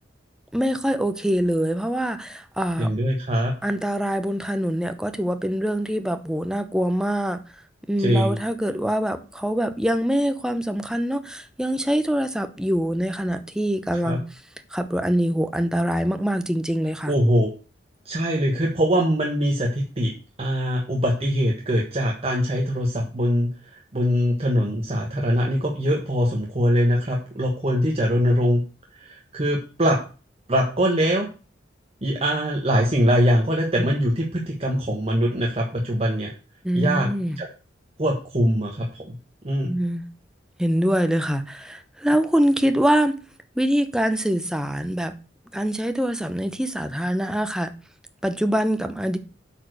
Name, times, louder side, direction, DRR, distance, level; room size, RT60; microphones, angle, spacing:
voice 1, 0.5-2.9 3.6-7.4 7.9-14.2 14.7-17.1 36.6-37.4 39.6-40.1 40.6-43.2 43.6-45.1 45.5-47.7 48.2-49.2, equal, 5° right, 0.8 m, -24 dB
voice 2, 2.8-3.5 8.0-8.4 14.0-14.2 17.1-17.5 18.0-20.1 20.4-28.6 28.9-30.0 30.5-31.3 32.0-36.3 36.7-37.1 37.4-37.5 38.0-39.1 39.4-39.8, equal, 35° right, 1.4 m, -22 dB
8.5 x 5.0 x 6.4 m
head